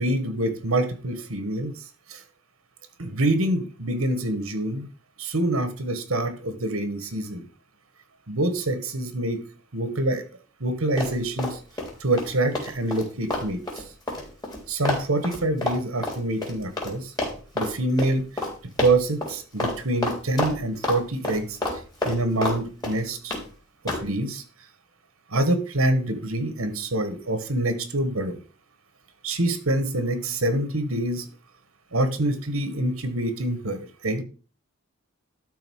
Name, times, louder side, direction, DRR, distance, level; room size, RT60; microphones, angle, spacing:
voice 1, 0.0-1.8 2.1-2.2 3.0-4.9 5.2-7.4 8.3-9.4 9.7-10.2 10.6-11.6 12.0-13.6 14.7-17.1 17.5-18.2 18.8-23.3 23.8-24.4 25.3-28.4 29.2-31.2 31.9-34.2, right 1 dB, 85° right, 10 dB, 1.7 m, -26 dB
Run, 11.0-11.9 12.2-16.9 17.2-17.7 18.0-18.1 18.4-18.5 18.8-19.3 19.6-19.8 20.0-21.0 21.2-22.6 22.8-23.4 23.9-24.1, left 1 dB, 20° left, 3.8 m, -28 dB
12.5 x 4.6 x 6.5 m, 0.37 s
head